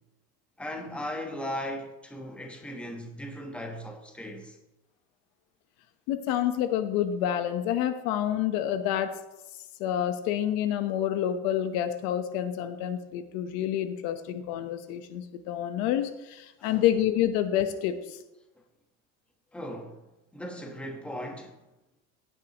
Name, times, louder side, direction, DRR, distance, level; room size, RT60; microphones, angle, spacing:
voice 1, 0.6-4.6 16.6-16.8 19.5-20.0 20.3-21.6, equal, 5° left, 1.2 m, -37 dB
voice 2, 6.1-9.2 9.8-18.2, left 11 dB, 80° left, 1.1 m, -28 dB
16.5 x 9.4 x 3.0 m
cardioid pair, 170°, 31 cm